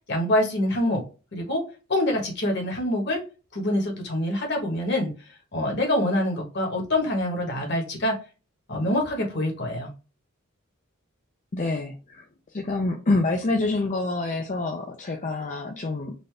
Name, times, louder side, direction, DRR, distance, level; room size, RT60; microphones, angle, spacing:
voice 1, 0.1-1.0 1.3-1.6 1.9-3.2 3.5-5.1 5.5-8.2 8.7-9.9, left 1 dB, 50° left, 1 dB, 1.3 m, -25 dB
voice 2, 11.5-12.2 12.5-16.1, left 2 dB, 35° left, 2 dB, 0.5 m, -27 dB
4.1 x 2.6 x 3.3 m, 0.33 s
head